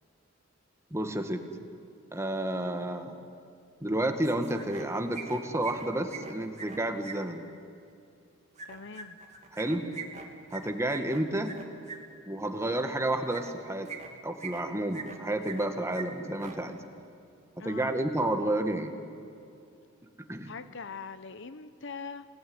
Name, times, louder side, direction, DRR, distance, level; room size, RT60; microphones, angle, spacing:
voice 1, 0.9-1.4 2.1-3.1 3.8-7.4 9.5-9.9 10.5-11.6 12.2-16.8 17.6-18.9 20.3-20.5, right 1 dB, 15° right, 6 dB, 1.9 m, -31 dB
sound 1, 4.2-4.9 5.1-7.2 8.6-12.0 13.3-13.5 13.9-14.6 14.9-15.7 15.9-16.0 16.3-16.6, right 5 dB, 35° right, 2.6 m, -42 dB
voice 2, 8.7-9.2 17.6-17.9 20.5-22.2, left 5 dB, 60° left, 12 dB, 0.9 m, -42 dB
28.0 x 19.0 x 9.6 m, 2.6 s
head